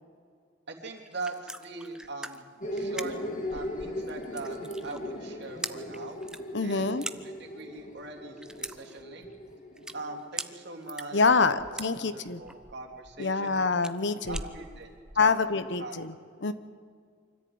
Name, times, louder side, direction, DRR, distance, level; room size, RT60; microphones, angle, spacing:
voice 1, 0.7-2.4 2.7-3.2 3.5-4.6 4.8-6.2 6.6-6.9 7.2-9.3 9.9-11.2 11.4-11.6 11.9-13.6 14.3-15.3 15.8-16.0, right 3 dB, 60° right, 1 dB, 3.1 m, -41 dB
sound 1, 1.0-15.3, right 1 dB, 5° right, 0.6 m, -42 dB
sound 2, 2.6-10.2, equal, 45° left, 2.9 m, -38 dB
voice 2, 6.5-7.0 11.1-12.4 13.2-14.4 15.2-16.1 16.4-16.5, left 4 dB, 65° left, 13 dB, 1.0 m, -26 dB
25.0 x 14.0 x 9.5 m, 2.1 s
head